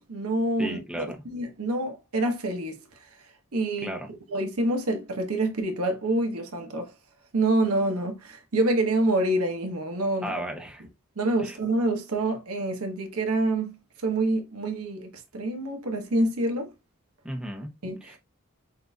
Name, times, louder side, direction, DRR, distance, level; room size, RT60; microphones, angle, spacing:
voice 1, 0.0-1.0 1.3-2.8 3.5-4.0 4.3-6.9 7.3-10.4 11.2-13.7 14.0-16.7 17.8-18.2, right 2 dB, 85° right, 1.0 m, -27 dB
voice 2, 0.6-1.2 3.8-4.1 10.2-10.8 11.4-11.6 17.2-17.7 18.0-18.2, right 1 dB, 5° right, 0.8 m, -34 dB
6.1 x 2.6 x 2.3 m
head